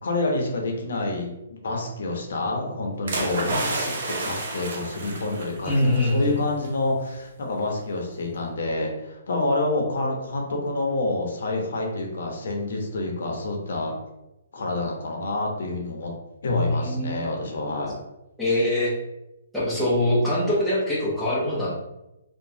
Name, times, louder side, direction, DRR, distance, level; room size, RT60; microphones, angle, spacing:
voice 1, 0.0-3.9 4.2-5.7 6.0-13.9 14.5-16.1 16.4-18.0, left 2 dB, 65° left, 0 dB, 0.8 m, -28 dB
sound 1, 3.1-6.1 6.4-6.7, right 2 dB, 55° right, 0.7 m, -30 dB
voice 2, 5.6-6.3 16.4-17.2 18.4-18.9 19.5-21.7, left 1 dB, ahead, -10 dB, 0.7 m, -23 dB
3.0 x 2.2 x 2.7 m, 0.94 s
hypercardioid pair, 165°, 0 cm